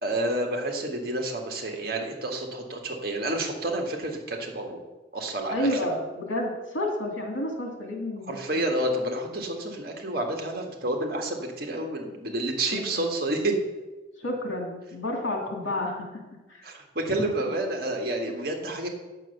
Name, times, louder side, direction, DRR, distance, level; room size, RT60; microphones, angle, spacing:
voice 1, 0.0-4.8 5.1-5.8 8.3-13.6 15.7-15.8 16.6-18.9, right 1 dB, 50° right, 2 dB, 1.7 m, -29 dB
voice 2, 5.5-8.4 12.9-13.1 14.2-16.2 16.5-16.7, left 1 dB, 85° left, 1 dB, 2.5 m, -30 dB
9.1 x 6.8 x 6.6 m, 1.2 s
head